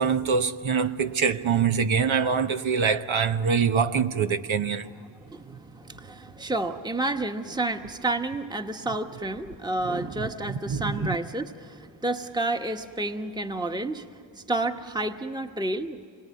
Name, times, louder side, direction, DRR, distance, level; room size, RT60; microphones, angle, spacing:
voice 1, 0.0-4.9 9.9-11.2, right 6 dB, 75° right, 1.1 m, -25 dB
voice 2, 5.2-16.0, right 2 dB, 10° right, 1.3 m, -30 dB
26.5 x 22.5 x 9.6 m
cardioid pair, 40°, 48 cm